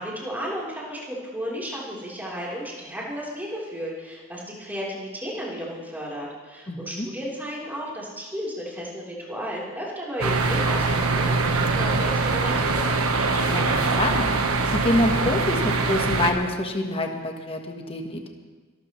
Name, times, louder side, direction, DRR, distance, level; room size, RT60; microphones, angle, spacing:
voice 1, 0.0-13.0, equal, 10° right, -6 dB, 3.7 m, -33 dB
voice 2, 6.7-7.1 13.5-13.7 14.0-14.2 14.7-18.3, left 1 dB, 25° left, 3 dB, 1.3 m, -26 dB
sound 1, 10.2-16.3, right 3 dB, 85° right, 1.3 m, -23 dB
23.5 x 13.0 x 3.2 m, 1.3 s
head